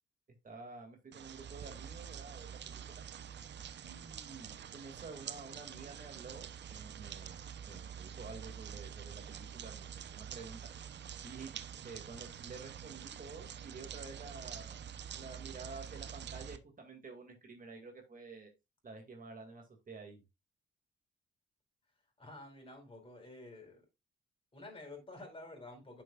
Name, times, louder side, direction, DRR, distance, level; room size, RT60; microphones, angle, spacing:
voice 1, 0.3-3.0 3.8-10.7 11.2-14.9 15.1-18.5 18.8-20.2, right 4 dB, 45° right, 2.2 m, -50 dB
sound 1, 1.1-16.6, right 8 dB, 60° right, 0.7 m, -47 dB
voice 2, 22.2-23.8 24.5-26.0, left 2 dB, 25° left, 4.4 m, -50 dB
9.1 x 6.7 x 2.4 m
cardioid pair, 75°, 20 cm